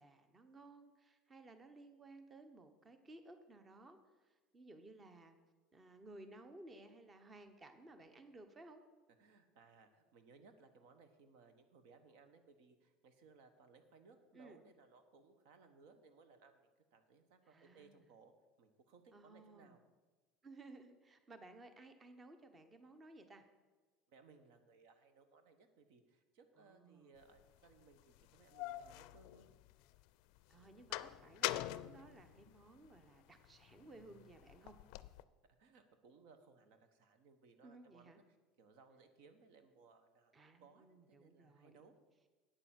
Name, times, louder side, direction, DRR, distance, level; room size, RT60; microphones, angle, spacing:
voice 1, 0.0-5.4 5.7-8.8 14.3-14.6 17.4-18.1 19.1-19.8 20.4-23.5 26.6-27.1 30.5-34.8 37.6-38.2 40.3-41.8, right 2 dB, 20° right, 9 dB, 0.9 m, -58 dB
voice 2, 9.2-18.3 18.6-19.8 24.1-29.5 35.6-38.2 38.6-41.9, right 4 dB, 75° right, 9 dB, 1.1 m, -64 dB
sound 1, 27.4-27.5 28.2-30.0 30.4-33.0 33.4-35.2, left 16 dB, 70° left, 0.4 m, -44 dB
8.9 x 6.8 x 7.5 m, 1.3 s
supercardioid pair, 120°, 0 cm